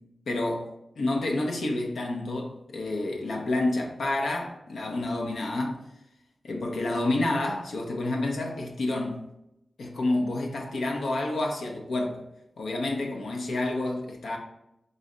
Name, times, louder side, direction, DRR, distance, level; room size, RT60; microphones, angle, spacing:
voice 1, 0.3-0.7 1.0-5.8 6.4-9.2 9.8-12.2 12.6-14.4, left 2 dB, 90° left, 0.7 m, -29 dB
4.0 x 3.2 x 3.8 m
wide cardioid pair, 105°, 0 cm